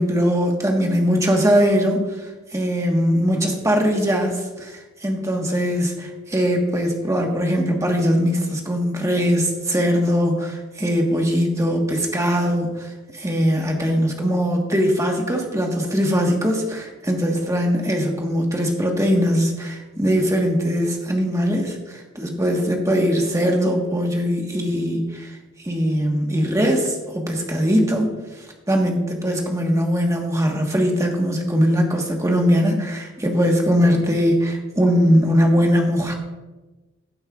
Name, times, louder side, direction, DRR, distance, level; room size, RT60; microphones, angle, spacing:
voice 1, 0.0-25.4 25.6-28.1 28.7-36.1, equal, 15° right, 1 dB, 1.3 m, -21 dB
15.0 x 8.6 x 2.4 m, 1.2 s
head